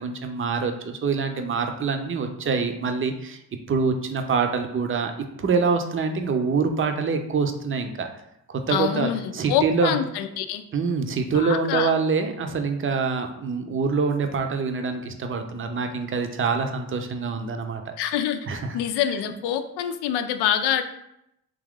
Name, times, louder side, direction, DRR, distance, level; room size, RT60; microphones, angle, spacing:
voice 1, 0.0-3.4 3.7-5.1 5.4-8.1 8.5-9.9 10.7-17.9 18.5-18.8, right 5 dB, 35° right, 6 dB, 0.6 m, -25 dB
voice 2, 8.7-10.6 11.3-11.9 18.0-18.5 18.7-20.8, left 10 dB, 85° left, 9 dB, 0.5 m, -26 dB
3.6 x 2.9 x 3.6 m, 0.81 s
supercardioid pair, 60°, 38 cm